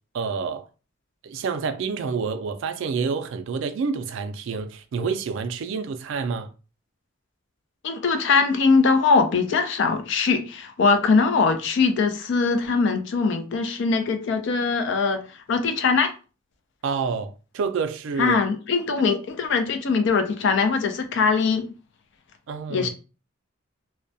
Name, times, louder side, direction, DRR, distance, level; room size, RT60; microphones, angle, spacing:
voice 1, 0.1-0.6 1.2-6.5 16.8-18.4 22.5-22.9, right 5 dB, 65° right, 0.3 m, -28 dB
voice 2, 7.8-15.2 15.5-16.1 18.2-21.7 22.7-22.9, left 4 dB, 60° left, 0.4 m, -21 dB
2.2 x 2.1 x 2.6 m
head